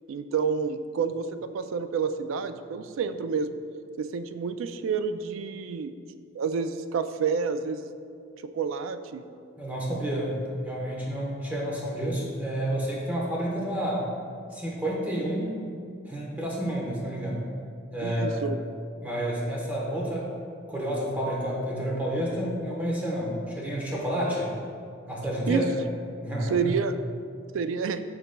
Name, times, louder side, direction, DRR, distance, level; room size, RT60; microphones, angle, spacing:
voice 1, 0.1-3.5 4.0-5.9 6.3-7.9 8.4-9.2 18.0-18.6 25.5-25.6 26.5-27.0 27.5-28.0, right 5 dB, 85° right, 10 dB, 0.3 m, -29 dB
voice 2, 9.6-14.1 14.5-15.6 16.1-17.4 17.9-18.4 19.0-20.3 20.7-24.5 25.1-25.7 26.2-26.7, equal, 10° right, -4 dB, 1.0 m, -30 dB
11.0 x 4.0 x 2.2 m, 2.4 s
head